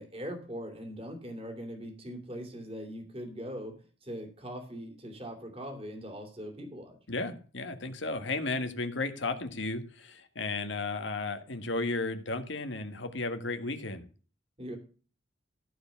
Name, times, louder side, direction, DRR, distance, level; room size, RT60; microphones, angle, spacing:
voice 1, 0.0-7.0 14.6-14.8, equal, 30° right, 2 dB, 3.0 m, -41 dB
voice 2, 7.1-14.0, left 3 dB, 80° left, 8 dB, 1.6 m, -34 dB
14.0 x 4.9 x 7.1 m, 0.39 s
head